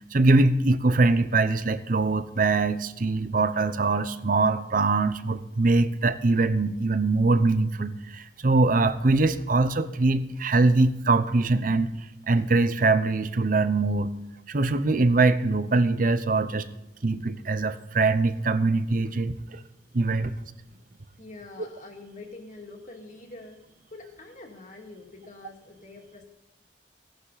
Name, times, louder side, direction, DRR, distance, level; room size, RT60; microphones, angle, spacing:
voice 1, 0.1-11.9 12.3-14.1 14.5-16.7 17.0-19.6 19.9-20.3, right 3 dB, 50° right, 13 dB, 0.8 m, -23 dB
voice 2, 21.2-26.3, left 2 dB, 45° left, 1 dB, 2.5 m, -45 dB
16.5 x 11.5 x 4.1 m, 0.95 s
head